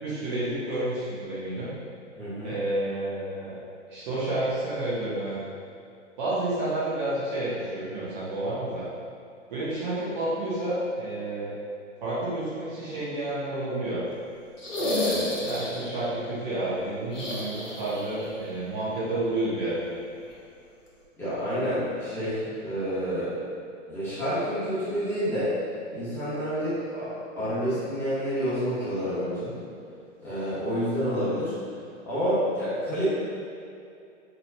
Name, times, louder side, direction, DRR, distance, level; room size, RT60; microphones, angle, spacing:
voice 1, 0.0-1.7 2.4-3.6 3.9-5.4 6.2-8.9 9.5-11.5 12.0-14.0 14.8-19.8, right 1 dB, 35° right, -10 dB, 1.2 m, -30 dB
voice 2, 2.2-2.5 21.2-23.3 23.9-25.5 25.9-29.7 30.2-31.5 32.0-33.0, equal, 5° left, -15 dB, 1.2 m, -29 dB
sound 1, 14.6-16.0 17.1-18.3 18.5-18.6 20.3-20.4, left 1 dB, 80° left, 1.0 m, -30 dB
4.8 x 3.2 x 2.3 m, 2.5 s
figure-of-eight pair, 110°, 37 cm